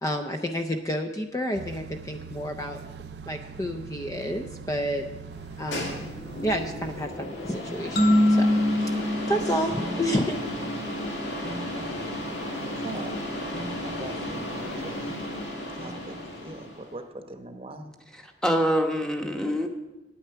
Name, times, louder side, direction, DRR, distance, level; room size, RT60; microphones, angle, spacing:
voice 1, 0.0-2.8 3.3-5.1 5.6-6.1 6.4-8.5 8.8-9.0 9.3-10.4, equal, 20° left, 6 dB, 0.5 m, -30 dB
sound 1, 1.6-7.1, right 5 dB, 65° right, 0.4 m, -42 dB
sound 2, 5.3-16.9, left 1 dB, 85° left, 2.2 m, -34 dB
sound 3, 8.0-10.6, left 1 dB, 60° left, 1.9 m, -24 dB
voice 2, 12.6-13.1 13.8-15.3 15.7-16.2 16.4-17.9, right 2 dB, 35° right, 6 dB, 0.9 m, -41 dB
voice 3, 18.1-19.7, equal, 5° left, 3 dB, 1.0 m, -25 dB
9.4 x 9.0 x 6.7 m, 1.0 s
head